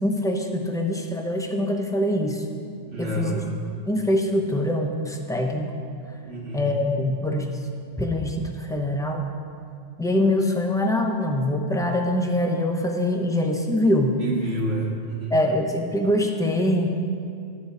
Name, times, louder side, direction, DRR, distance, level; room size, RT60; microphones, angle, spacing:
voice 1, 0.0-2.4 3.0-3.4 3.9-5.7 6.5-7.5 8.0-9.3 10.0-14.2 15.3-16.9, left 1 dB, 5° left, 2 dB, 0.5 m, -24 dB
voice 2, 2.9-3.6 6.2-6.6 14.2-15.4, right 1 dB, 75° right, -3 dB, 1.9 m, -29 dB
12.5 x 4.8 x 6.9 m, 2.4 s
omnidirectional pair, 1.3 m